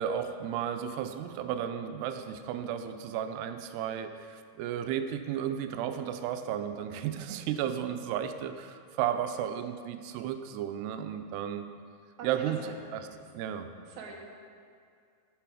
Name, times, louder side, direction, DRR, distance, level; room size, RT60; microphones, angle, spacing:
voice 1, 0.0-11.7 12.2-12.6 12.9-13.0 13.3-13.7, right 9 dB, 90° right, 8 dB, 2.6 m, -33 dB
voice 2, 12.2-12.7 13.8-14.1, right 6 dB, 65° right, -1 dB, 2.0 m, -44 dB
9.1 x 7.5 x 4.9 m, 2.2 s
omnidirectional pair, 4.7 m